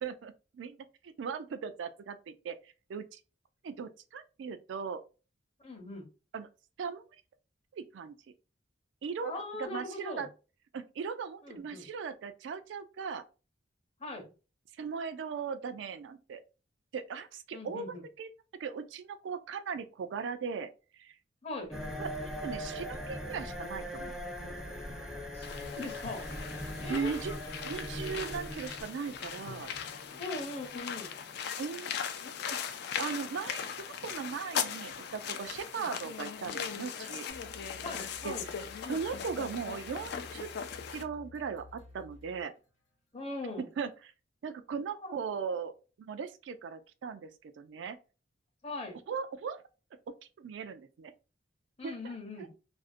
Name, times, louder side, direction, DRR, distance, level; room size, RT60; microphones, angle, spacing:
voice 1, 0.0-2.6 2.9-3.2 3.6-5.0 6.3-6.5 6.8-7.0 7.7-8.2 9.0-9.3 9.6-10.3 10.7-13.2 14.8-16.4 16.9-18.3 18.6-21.2 22.0-22.1 22.4-24.5 26.9-27.3 27.6-29.7 31.6-31.9 32.5-32.7 33.0-37.3 38.2-38.4 38.9-40.5 40.9-42.5 43.6-43.9 44.4-48.0 49.1-49.6 50.4-51.1 51.8-52.5, right 6 dB, 70° right, 0.3 m, -38 dB
voice 2, 5.6-6.1 9.2-10.3 11.4-11.9 14.0-14.3 17.5-18.0 21.4-21.8 25.3-25.5 25.7-26.3 26.8-27.2 30.2-31.1 35.8-35.9 37.8-38.5 43.1-43.6 45.0-45.1 48.6-49.0 51.8-52.5, left 2 dB, 35° left, 0.7 m, -40 dB
sound 1, 21.7-31.3, equal, ahead, 0.5 m, -41 dB
sound 2, 25.4-41.0, left 7 dB, 60° left, 0.3 m, -39 dB
sound 3, 37.3-43.0, left 3 dB, 80° left, 0.8 m, -53 dB
2.5 x 2.1 x 2.4 m
head